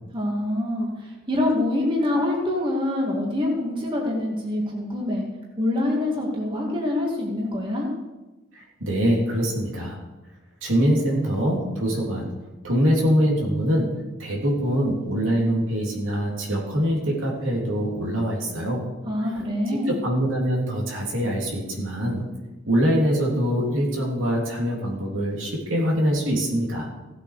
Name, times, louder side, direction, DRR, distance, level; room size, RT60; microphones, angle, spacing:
voice 1, 0.1-5.3 5.6-7.9 19.0-20.0, left 1 dB, 25° right, -2 dB, 2.3 m, -25 dB
voice 2, 8.5-10.0 10.6-12.3 12.6-18.9 19.9-22.2 22.7-26.9, equal, 75° right, -2 dB, 3.4 m, -24 dB
16.5 x 8.3 x 5.1 m, 1.1 s
head